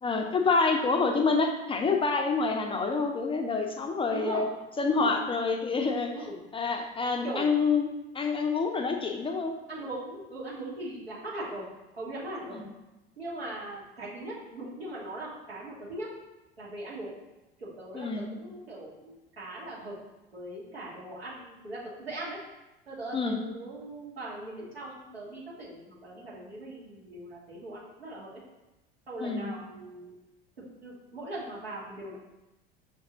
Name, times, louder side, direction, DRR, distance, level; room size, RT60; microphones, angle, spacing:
voice 1, 0.0-4.5 4.8-6.1 6.5-7.9 8.1-9.5 12.5-12.6 17.9-18.3 23.1-23.4 29.2-29.5, left 4 dB, 20° left, 3 dB, 0.4 m, -27 dB
voice 2, 4.1-4.4 4.9-5.1 6.1-6.4 7.2-7.5 9.7-11.7 12.0-12.6 13.2-16.1 16.6-17.1 17.6-20.0 20.3-22.4 22.9-28.4 29.1-30.1 30.6-32.2, right 1 dB, 85° right, -7 dB, 1.4 m, -40 dB
6.4 x 2.6 x 2.8 m, 0.99 s
figure-of-eight pair, 65°, 30 cm